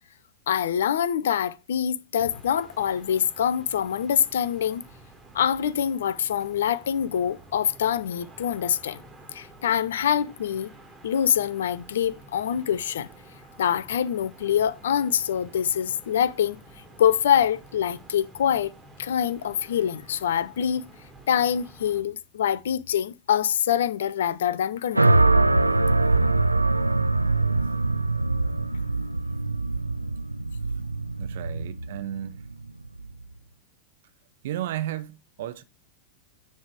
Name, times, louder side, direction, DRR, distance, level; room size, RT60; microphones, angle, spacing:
voice 1, 0.5-4.8 5.3-9.0 9.3-10.7 11.0-13.1 13.6-16.6 17.0-18.7 19.0-20.9 21.3-25.3, left 9 dB, 60° left, 0.5 m, -25 dB
sound 1, 2.3-22.0, right 2 dB, 10° right, 1.8 m, -50 dB
sound 2, 24.9-33.2, right 2 dB, 85° right, 0.3 m, -23 dB
voice 2, 31.2-32.4 34.4-35.6, right 12 dB, 55° right, 0.7 m, -33 dB
9.5 x 3.4 x 4.7 m
figure-of-eight pair, 90°, 0 cm